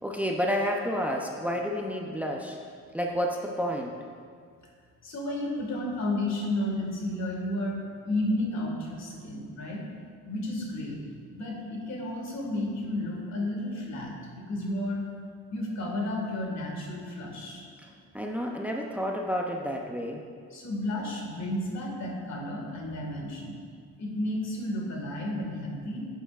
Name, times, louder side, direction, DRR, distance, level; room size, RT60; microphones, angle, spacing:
voice 1, 0.0-2.6 2.9-3.9 18.1-20.2, equal, 5° right, 1 dB, 0.7 m, -30 dB
voice 2, 5.0-9.8 10.3-11.0 11.3-15.0 15.5-17.6 20.5-23.6 24.0-26.1, left 1 dB, 60° left, -1 dB, 2.0 m, -32 dB
11.0 x 8.0 x 2.5 m, 2.1 s
cardioid pair, 90°, 30 cm